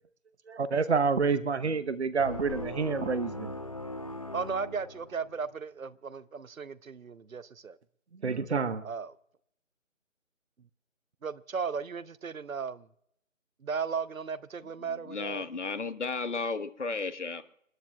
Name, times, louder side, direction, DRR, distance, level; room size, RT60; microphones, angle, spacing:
voice 1, 0.5-3.5 8.2-8.8, right 5 dB, 55° right, 0.9 m, -28 dB
sound 1, 2.2-5.5, left 1 dB, 25° left, 0.7 m, -40 dB
voice 2, 4.3-7.8 8.8-9.1 11.2-12.9 13.6-15.4, right 5 dB, 90° right, 0.8 m, -36 dB
voice 3, 15.1-17.4, left 4 dB, 60° left, 1.2 m, -33 dB
29.0 x 9.9 x 2.3 m
figure-of-eight pair, 160°, 40 cm